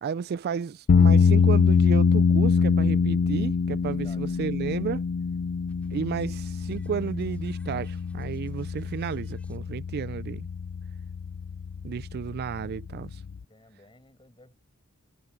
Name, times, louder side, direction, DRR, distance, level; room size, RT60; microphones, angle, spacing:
voice 1, 0.0-5.0 5.9-10.5 11.8-13.2, right 6 dB, 45° right, 0.3 m, -32 dB
sound 1, 0.9-13.4, left 5 dB, 55° left, 0.4 m, -24 dB
voice 2, 3.8-4.4 13.4-14.5, left 2 dB, 25° left, 6.4 m, -55 dB
sound 2, 5.7-9.6, equal, 5° left, 4.0 m, -56 dB
head